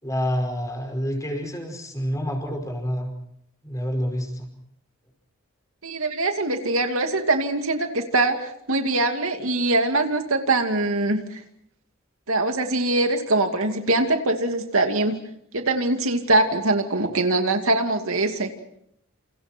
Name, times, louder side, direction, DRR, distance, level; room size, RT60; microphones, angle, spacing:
voice 1, 0.0-3.1 3.6-4.5, equal, 15° left, 4 dB, 5.4 m, -28 dB
voice 2, 5.8-11.4 12.3-15.2 15.5-18.5, right 2 dB, 75° right, 5 dB, 2.5 m, -23 dB
29.0 x 29.0 x 4.5 m, 0.71 s
head